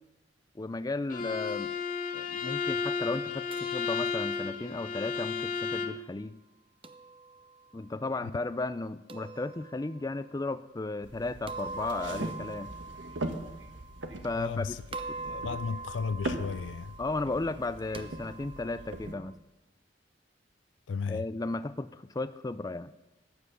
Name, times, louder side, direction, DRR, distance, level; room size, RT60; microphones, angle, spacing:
voice 1, 0.6-1.7 2.1-6.4 7.7-12.7 14.2-14.8 17.0-19.3 21.1-22.9, left 2 dB, 20° left, 0.4 m, -34 dB
Bowed string instrument, 1.1-6.0, left 5 dB, 50° left, 1.0 m, -33 dB
sound 1, 3.5-5.6 6.8-7.8 9.1-10.3 11.5-14.6 14.9-19.3, right 3 dB, 30° right, 0.8 m, -44 dB
sound 2, 11.0-19.1, right 1 dB, 85° right, 1.5 m, -40 dB
voice 2, 14.3-14.8 15.2-16.9 20.9-21.2, left 5 dB, 90° left, 0.4 m, -34 dB
14.5 x 9.9 x 6.8 m
head